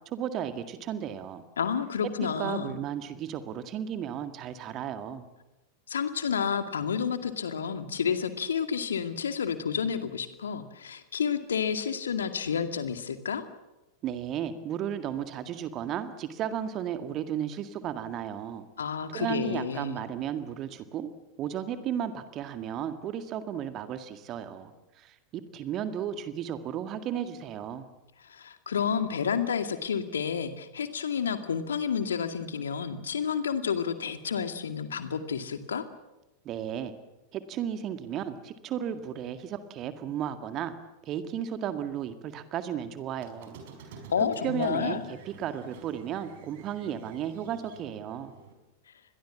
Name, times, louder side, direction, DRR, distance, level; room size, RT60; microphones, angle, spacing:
voice 1, 0.1-1.4 2.4-5.3 14.0-18.6 19.1-21.1 21.4-27.9 36.5-36.9 37.3-40.7 41.0-43.6 44.4-48.3, right 9 dB, 35° right, 10 dB, 1.9 m, -34 dB
voice 2, 1.6-2.8 5.9-13.4 18.8-20.0 28.2-35.8 44.1-45.0, left 7 dB, 70° left, 9 dB, 2.2 m, -30 dB
Squeak, 43.2-48.5, right 5 dB, 55° right, 5.2 m, -50 dB
29.5 x 22.0 x 7.4 m, 1.0 s
figure-of-eight pair, 90°, 0 cm